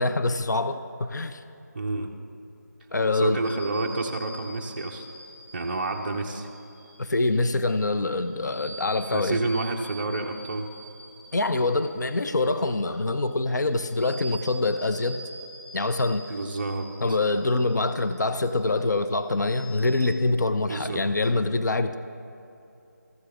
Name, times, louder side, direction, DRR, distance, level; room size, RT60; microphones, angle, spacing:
voice 1, 0.0-1.4 2.9-3.4 7.0-9.4 11.3-15.2 15.7-16.3 17.0-22.0, left 2 dB, 70° left, 10 dB, 0.5 m, -25 dB
voice 2, 1.7-2.1 3.1-5.1 5.5-6.5 9.1-10.7 16.3-16.9 20.7-21.0, right 2 dB, 35° right, 0 dB, 0.5 m, -29 dB
sound 1, 3.4-20.0, right 1 dB, 20° left, 2.6 m, -46 dB
13.5 x 7.8 x 3.4 m, 2.7 s
figure-of-eight pair, 165°, 10 cm